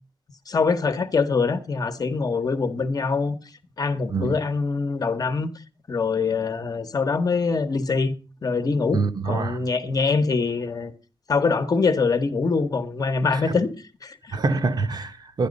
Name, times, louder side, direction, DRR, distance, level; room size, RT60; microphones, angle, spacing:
voice 1, 0.5-3.4 3.8-5.5 5.9-8.1 8.4-10.9 11.3-13.7 14.0-14.4, left 4 dB, 40° left, 1.1 m, -24 dB
voice 2, 4.1-4.4 8.9-9.6 13.3-13.6 14.3-15.5, right 3 dB, 50° right, 1.0 m, -25 dB
12.5 x 10.5 x 5.2 m
wide cardioid pair, 160°, 9 cm